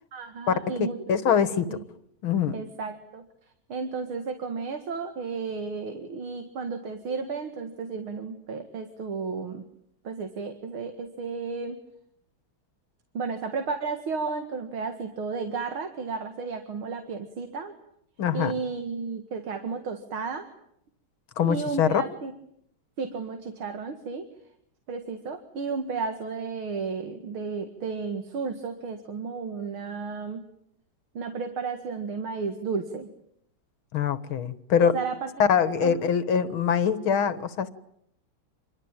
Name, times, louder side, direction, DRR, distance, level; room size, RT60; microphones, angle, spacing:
voice 1, 0.1-1.0 1.7-1.8 2.5-3.2 3.7-9.6 10.0-11.8 13.1-17.7 18.3-20.5 21.4-22.3 23.0-24.3 24.9-30.4 31.1-33.1 34.8-35.3 35.8-36.0, right 4 dB, 90° right, 6 dB, 2.8 m, -33 dB
voice 2, 0.8-1.8 2.2-2.6 18.2-18.5 21.4-22.0 33.9-34.9 35.4-37.7, left 7 dB, 80° left, 13 dB, 2.3 m, -23 dB
27.5 x 23.0 x 9.0 m, 0.74 s
omnidirectional pair, 2.2 m